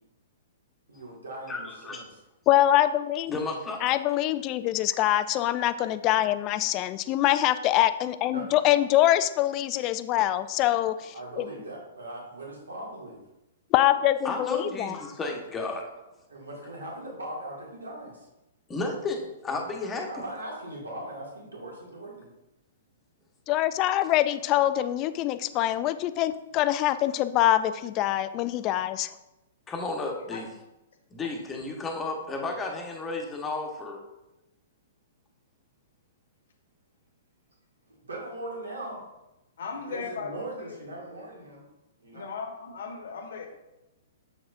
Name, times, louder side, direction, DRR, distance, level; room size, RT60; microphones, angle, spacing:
voice 1, 0.9-2.2 8.3-8.5 11.1-13.2 16.3-18.3 20.1-22.3 38.1-39.0 39.7-41.6 42.0-42.3, right 1 dB, 85° right, -4 dB, 2.1 m, -40 dB
voice 2, 1.5-2.0 3.3-3.8 14.2-15.9 18.7-20.1 29.7-30.5 31.1-34.0, left 3 dB, 20° left, 1 dB, 1.2 m, -33 dB
voice 3, 2.5-3.4 3.8-11.4 13.7-15.0 23.5-29.1, left 13 dB, 35° left, 13 dB, 0.4 m, -24 dB
voice 4, 39.6-40.4 40.8-40.9 42.1-43.5, left 5 dB, 65° left, 4 dB, 1.2 m, -37 dB
7.3 x 6.0 x 2.6 m, 0.96 s
hypercardioid pair, 120°, 0 cm